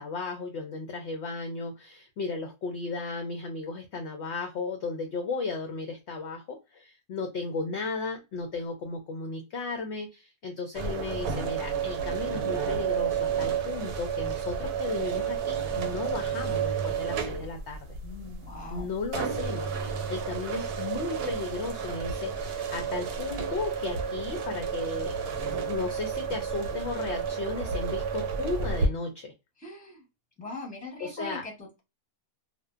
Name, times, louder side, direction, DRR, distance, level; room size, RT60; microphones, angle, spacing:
voice 1, 0.0-18.0 18.7-25.1 25.7-29.3 31.0-31.4, left 3 dB, 65° left, 3 dB, 0.7 m, -35 dB
sound 1, 10.7-28.9, right 6 dB, 85° right, 1.1 m, -31 dB
voice 2, 18.0-18.9 29.6-30.0 30.4-31.8, left 2 dB, 5° left, -1 dB, 0.7 m, -41 dB
2.6 x 2.1 x 2.3 m, 0.26 s
omnidirectional pair, 1.6 m